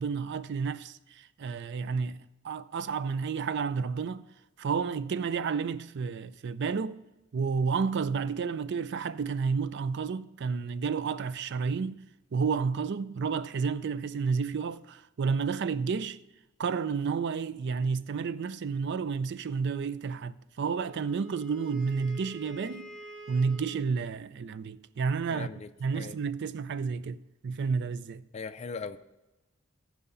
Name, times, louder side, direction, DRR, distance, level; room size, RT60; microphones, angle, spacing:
voice 1, 0.0-2.2 2.4-4.2 4.6-7.0 7.3-12.0 12.3-16.2 16.6-22.9 23.3-25.5 25.8-28.2, right 5 dB, 55° right, 0.4 m, -31 dB
Wind instrument woodwind instrument, 20.6-23.9, right 2 dB, ahead, 3.5 m, -47 dB
voice 2, 25.3-26.2 28.3-29.0, left 4 dB, 30° left, 0.4 m, -39 dB
14.0 x 4.9 x 5.5 m
head